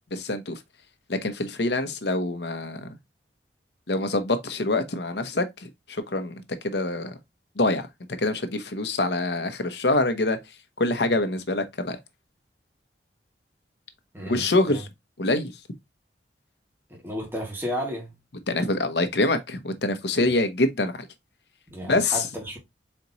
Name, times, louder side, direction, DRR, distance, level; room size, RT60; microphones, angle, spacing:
voice 1, 0.1-0.6 1.1-3.0 3.9-7.1 7.6-7.9 8.2-10.4 10.8-12.0 14.3-14.9 15.2-15.5 18.5-21.1 21.8-22.2, left 2 dB, 70° left, 0.8 m, -25 dB
voice 2, 14.1-14.8 16.9-18.1 21.7-22.6, equal, 15° right, 1.5 m, -33 dB
4.3 x 3.0 x 3.9 m
head